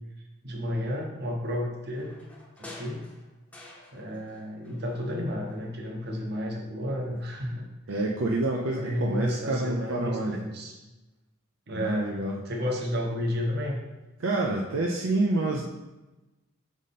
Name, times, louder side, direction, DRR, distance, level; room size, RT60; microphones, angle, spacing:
voice 1, 0.4-2.2 2.6-3.0 3.9-8.1 8.7-10.7 11.7-12.2 12.5-13.8, left 1 dB, 50° right, 0 dB, 1.0 m, -32 dB
sound 1, 1.9-4.4 4.6-5.7 6.1-6.2, left 2 dB, 10° left, 0.9 m, -49 dB
voice 2, 7.9-10.4 11.7-12.4 14.2-15.6, right 2 dB, 75° right, -1 dB, 0.6 m, -28 dB
6.2 x 3.6 x 4.1 m, 1.1 s
head